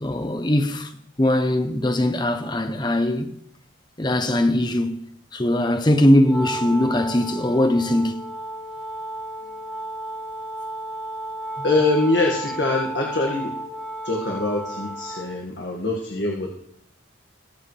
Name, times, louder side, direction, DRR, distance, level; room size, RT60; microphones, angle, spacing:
voice 1, 0.0-0.9 1.2-3.3 4.0-5.0 5.3-8.2, left 1 dB, 20° left, 0.8 m, -20 dB
Wind instrument woodwind instrument, 6.2-15.4, right 1 dB, ahead, 2.2 m, -33 dB
voice 2, 11.6-13.5 14.0-16.5, left 2 dB, 60° left, 1.9 m, -23 dB
22.0 x 7.9 x 3.3 m
head